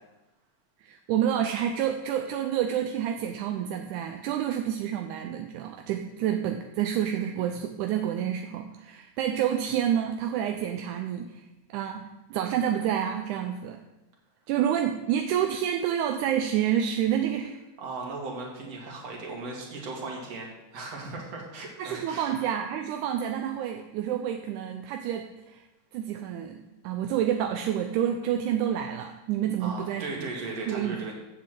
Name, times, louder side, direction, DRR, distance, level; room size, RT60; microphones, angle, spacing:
voice 1, 0.8-11.4 11.7-13.8 14.5-17.6 21.8-25.6 25.9-31.0, right 10 dB, 85° right, 5 dB, 2.1 m, -29 dB
voice 2, 17.8-22.4 29.6-31.1, right 3 dB, 55° right, -1 dB, 3.1 m, -37 dB
7.5 x 7.3 x 7.5 m, 1.0 s
omnidirectional pair, 3.5 m